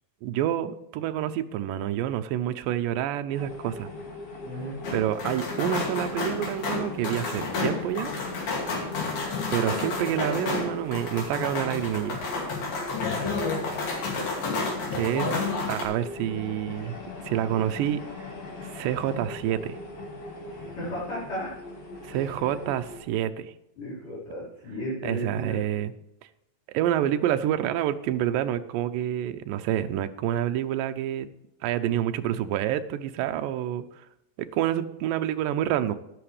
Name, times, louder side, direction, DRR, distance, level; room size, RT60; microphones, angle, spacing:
voice 1, 0.2-3.9 4.9-8.1 9.5-12.2 14.9-15.3 15.7-17.0 17.3-18.0 18.6-19.8 22.0-23.5 25.0-25.9 26.7-31.3 31.6-34.1 34.4-36.0, right 11 dB, 85° right, 9 dB, 2.3 m, -28 dB
sound 1, 3.3-23.0, left 2 dB, 45° left, 3.2 m, -41 dB
voice 2, 4.4-4.8 15.2-15.4 20.5-21.5 22.1-22.5 23.8-25.6, equal, 65° left, -7 dB, 6.3 m, -35 dB
sound 2, 4.8-15.8, left 3 dB, 85° left, 4.3 m, -30 dB
13.0 x 11.0 x 3.3 m, 0.84 s
omnidirectional pair, 4.0 m